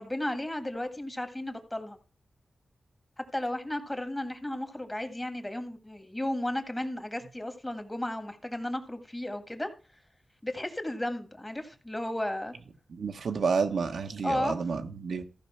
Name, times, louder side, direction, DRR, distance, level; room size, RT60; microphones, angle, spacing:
voice 1, 0.0-2.0 3.2-9.7 10.4-12.5 14.2-14.5, left 1 dB, 15° left, 7 dB, 1.8 m, -34 dB
voice 2, 12.9-15.2, right 5 dB, 85° right, 6 dB, 1.0 m, -30 dB
14.5 x 5.3 x 5.7 m, 0.36 s
wide cardioid pair, 75°, 0 cm